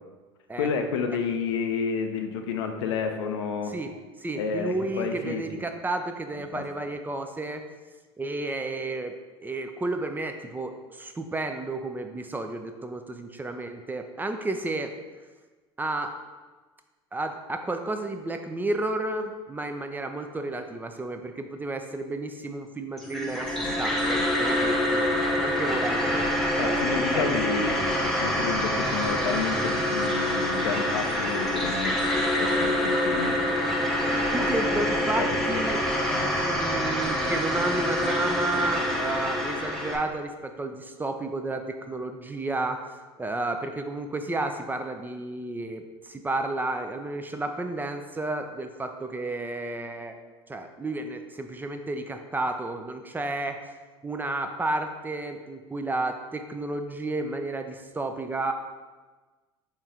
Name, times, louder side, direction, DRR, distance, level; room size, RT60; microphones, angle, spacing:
voice 1, 0.6-3.7 4.4-5.6 6.5-6.6 26.6-32.0 32.4-33.3 35.2-35.7 36.1-36.3, left 5 dB, 80° left, 5 dB, 0.5 m, -30 dB
voice 2, 3.7-7.6 8.2-9.2 9.4-14.9 15.8-16.2 17.1-25.1 25.4-26.3 26.6-26.8 27.1-27.6 28.9-29.0 34.3-35.8 36.4-42.8 43.2-50.2 50.5-53.6 54.0-58.5, right 2 dB, 15° right, 6 dB, 0.4 m, -32 dB
sound 1, 23.0-40.0, left 1 dB, 5° left, 0.8 m, -26 dB
4.3 x 3.1 x 3.7 m, 1.3 s
hypercardioid pair, 80°, 14 cm